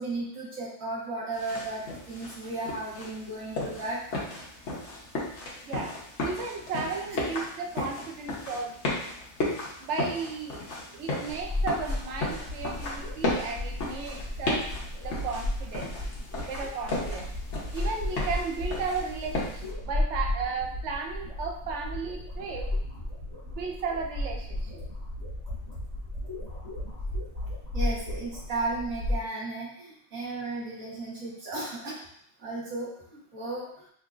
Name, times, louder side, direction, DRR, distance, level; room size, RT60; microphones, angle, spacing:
voice 1, 0.0-1.8 2.1-4.0 27.7-32.0 32.4-33.7, right 2 dB, 75° right, -7 dB, 1.7 m, -34 dB
sound 1, 1.3-19.7, left 2 dB, 60° left, 1.3 m, -35 dB
voice 2, 5.6-5.9 6.2-9.0 9.8-10.7 10.9-14.7 14.9-15.9 16.5-17.3 17.7-22.7 23.5-24.8, right 4 dB, 60° right, 1 dB, 0.9 m, -34 dB
sound 2, 11.3-29.2, left 1 dB, 30° right, 1.4 m, -34 dB
5.8 x 2.7 x 2.5 m, 0.66 s
omnidirectional pair, 1.4 m